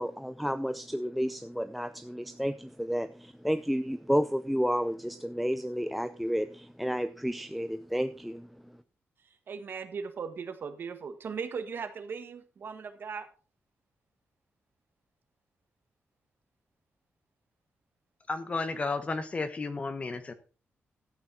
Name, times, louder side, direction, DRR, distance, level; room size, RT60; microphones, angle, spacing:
voice 1, 0.0-8.7, equal, ahead, 0.5 m, -31 dB
voice 2, 9.5-13.3, right 5 dB, 55° right, 1.6 m, -38 dB
voice 3, 18.3-20.3, left 3 dB, 30° left, 1.2 m, -33 dB
13.0 x 8.8 x 4.3 m
wide cardioid pair, 150°, 4 cm